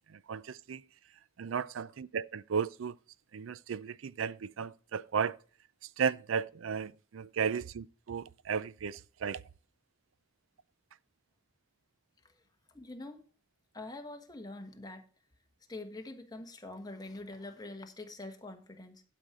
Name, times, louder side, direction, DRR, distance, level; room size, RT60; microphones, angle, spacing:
voice 1, 0.1-0.8 1.4-3.0 3.3-5.4 6.0-9.4, right 6 dB, 85° right, 0.4 m, -34 dB
voice 2, 12.7-13.2 13.7-15.0 15.7-19.0, left 2 dB, 20° left, 1.3 m, -45 dB
11.5 x 5.8 x 4.8 m
head